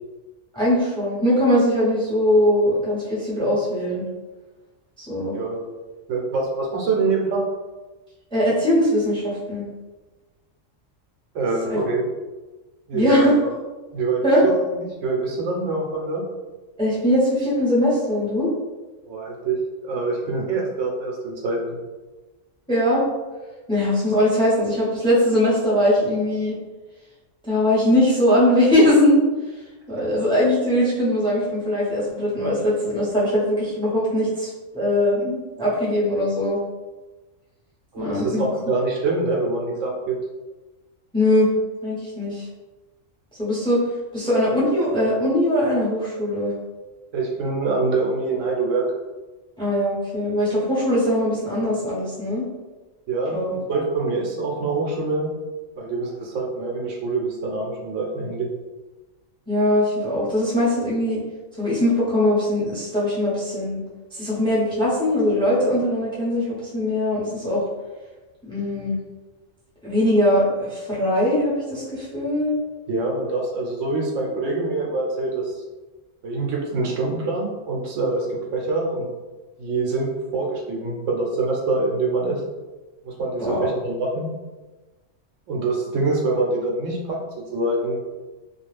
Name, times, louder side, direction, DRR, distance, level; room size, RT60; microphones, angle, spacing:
voice 1, 0.5-4.0 5.0-5.3 8.3-9.6 11.6-11.8 12.9-13.3 14.2-14.5 16.8-18.5 22.7-23.1 23.7-26.5 27.5-29.2 29.9-36.6 38.0-38.4 41.1-41.5 41.8-42.4 43.4-43.8 44.1-46.5 49.6-52.4 53.3-53.6 59.5-61.2 61.6-63.8 64.1-67.6 68.5-69.0 69.8-72.5 83.4-83.7, left 1 dB, 5° left, -7 dB, 0.7 m, -21 dB
voice 2, 5.3-5.6 6.1-7.4 11.3-12.1 12.9-13.3 13.9-16.2 19.1-19.6 19.8-21.8 37.9-40.2 47.1-48.9 53.1-53.4 53.7-55.3 55.8-58.5 72.9-75.6 76.2-79.1 79.6-82.4 83.0-84.3 85.5-88.0, right 3 dB, 80° right, -1 dB, 1.0 m, -25 dB
2.4 x 2.3 x 3.2 m, 1.2 s
omnidirectional pair, 1.3 m